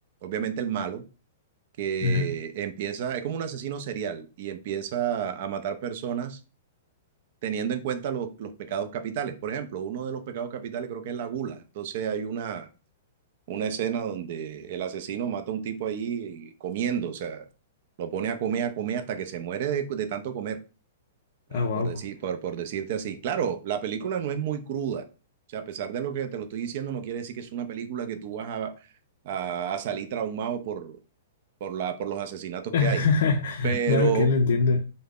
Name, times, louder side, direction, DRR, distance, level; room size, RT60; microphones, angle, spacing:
voice 1, 0.2-1.0 1.8-6.4 7.4-12.7 13.5-17.5 18.0-20.6 21.5-25.1 25.5-28.7 29.2-31.0 31.6-33.0 33.6-34.3, right 8 dB, 50° right, 0.4 m, -31 dB
voice 2, 2.0-2.5 21.5-22.1 32.7-34.9, left 4 dB, 65° left, 0.3 m, -24 dB
2.3 x 2.0 x 3.4 m
hypercardioid pair, 160°, 0 cm